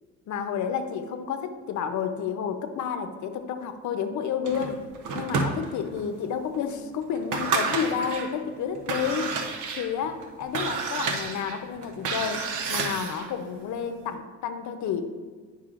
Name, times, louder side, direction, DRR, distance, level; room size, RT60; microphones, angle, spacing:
voice 1, 0.3-4.8 5.1-15.1, left 7 dB, 70° left, 8 dB, 0.7 m, -30 dB
sound 1, 4.4-6.0 6.5-6.6 7.1-8.3 8.7-13.3, right 4 dB, 85° right, 0.8 m, -30 dB
9.8 x 5.5 x 2.5 m, 1.5 s
cardioid pair, 90°, 30 cm